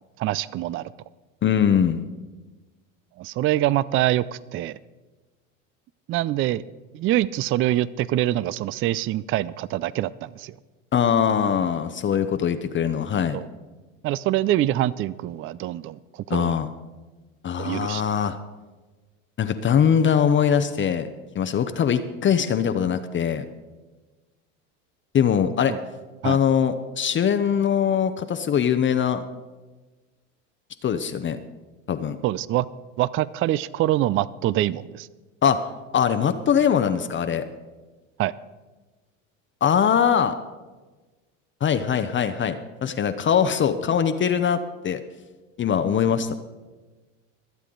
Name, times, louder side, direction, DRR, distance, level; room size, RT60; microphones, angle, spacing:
voice 1, 0.2-0.9 3.2-4.2 4.5-4.8 6.1-6.6 6.9-10.6 13.3-13.5 14.0-16.6 17.6-18.0 25.7-25.8 26.2-26.4 32.2-32.7 33.0-35.1 38.2-38.3, right 14 dB, 35° right, 20 dB, 0.4 m, -24 dB
voice 2, 1.4-2.1 10.9-13.4 16.3-16.7 17.4-18.4 19.4-21.1 21.3-23.4 25.1-25.7 26.2-29.2 30.8-31.4 31.9-32.2 35.4-35.6 35.9-37.4 39.6-40.3 41.6-44.6 44.8-45.0 45.6-46.3, left 8 dB, 30° left, 9 dB, 0.7 m, -22 dB
23.5 x 8.3 x 3.9 m, 1.2 s
supercardioid pair, 95°, 39 cm